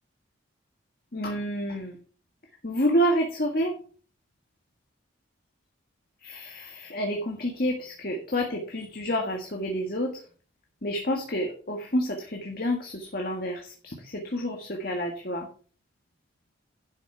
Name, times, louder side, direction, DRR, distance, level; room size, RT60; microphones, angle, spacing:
voice 1, 1.1-2.0 2.6-3.7 6.2-10.1 10.8-15.5, equal, 50° left, 1 dB, 1.7 m, -29 dB
11.0 x 6.2 x 4.8 m, 0.40 s
head